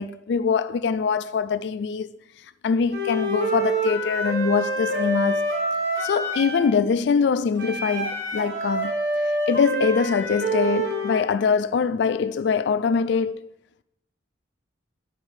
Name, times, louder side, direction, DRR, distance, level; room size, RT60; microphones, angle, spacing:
voice 1, 0.0-2.1 2.6-5.4 6.0-8.9 9.5-13.5, left 5 dB, 70° left, 0.3 m, -23 dB
Wind instrument woodwind instrument, 2.9-6.7 7.6-11.2, right 1 dB, 65° right, 2.1 m, -26 dB
9.6 x 4.4 x 4.8 m
head